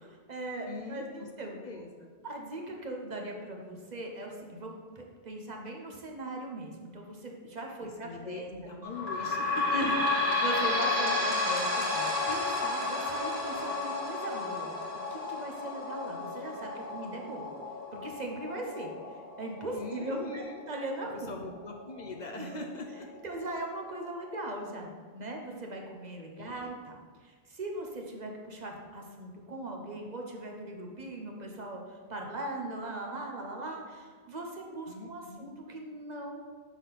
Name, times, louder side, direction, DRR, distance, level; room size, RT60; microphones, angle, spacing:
voice 1, 0.0-1.6 2.2-8.5 9.7-14.7 15.1-17.5 18.0-21.4 22.4-22.5 23.2-27.0 27.2-36.4, right 1 dB, 45° right, 1 dB, 0.9 m, -39 dB
voice 2, 0.7-1.3 1.6-2.1 7.8-9.8 19.8-20.6 21.1-23.1 26.4-26.7 34.9-35.5, left 3 dB, 50° left, 2 dB, 0.7 m, -42 dB
sound 1, 8.8-22.0 22.6-22.7 22.9-23.0 23.8-23.9, left 3 dB, 80° right, 1.6 m, -32 dB
6.0 x 5.9 x 4.0 m, 1.5 s
omnidirectional pair, 1.0 m